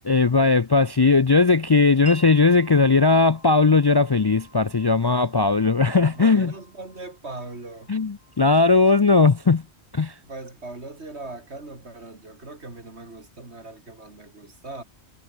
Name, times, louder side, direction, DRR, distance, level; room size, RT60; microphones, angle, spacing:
voice 1, 0.1-6.5 7.9-9.6 9.9-10.1, left 4 dB, 35° left, 0.4 m, -18 dB
Wind chime, 2.1-9.7, right 1 dB, 45° right, 6.6 m, -48 dB
voice 2, 6.1-7.9 10.2-14.8, right 2 dB, 80° right, 4.1 m, -40 dB
omnidirectional pair, 1.1 m